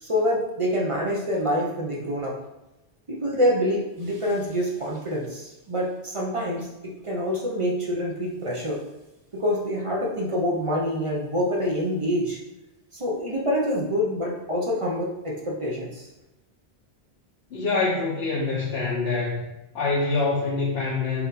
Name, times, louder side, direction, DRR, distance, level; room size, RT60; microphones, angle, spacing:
voice 1, 0.0-2.4 3.1-8.8 9.3-12.4 12.9-16.1, equal, 35° right, -2 dB, 0.6 m, -26 dB
voice 2, 17.5-19.4 19.7-21.3, left 3 dB, 75° left, -5 dB, 1.0 m, -25 dB
4.2 x 2.5 x 4.0 m, 0.97 s
omnidirectional pair, 1.1 m